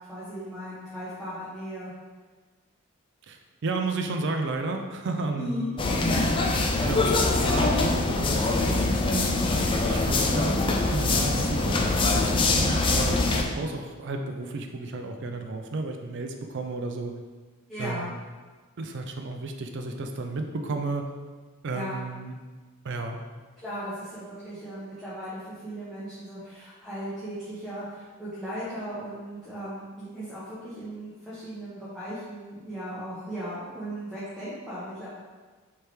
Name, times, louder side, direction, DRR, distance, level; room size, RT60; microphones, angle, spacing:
voice 1, 0.1-1.9 5.4-6.3 17.7-18.1 21.7-21.9 23.6-35.1, equal, ahead, -12 dB, 1.0 m, -37 dB
voice 2, 3.3-5.5 6.8-11.8 12.1-17.1 17.8-18.1 18.8-21.0 21.6-22.3 22.8-23.2, right 3 dB, 60° right, 4 dB, 0.5 m, -33 dB
sound 1, 5.8-13.4, left 2 dB, 25° left, 0.3 m, -24 dB
4.4 x 3.4 x 3.3 m, 1.4 s
head